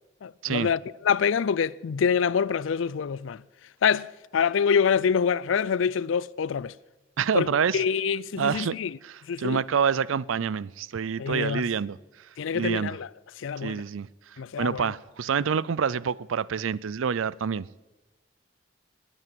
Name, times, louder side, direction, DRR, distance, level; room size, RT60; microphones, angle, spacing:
voice 1, 0.2-3.4 3.8-6.7 7.3-7.5 7.7-9.0 9.3-9.6 11.2-11.7 12.4-13.1 13.4-13.8 14.4-14.9 15.3-15.4, left 6 dB, 75° left, 0.4 m, -26 dB
voice 2, 7.2-7.8 8.4-8.8 9.0-12.0 12.5-13.0 13.6-14.1 14.6-17.8, right 6 dB, 85° right, 0.5 m, -27 dB
20.0 x 9.0 x 7.7 m
head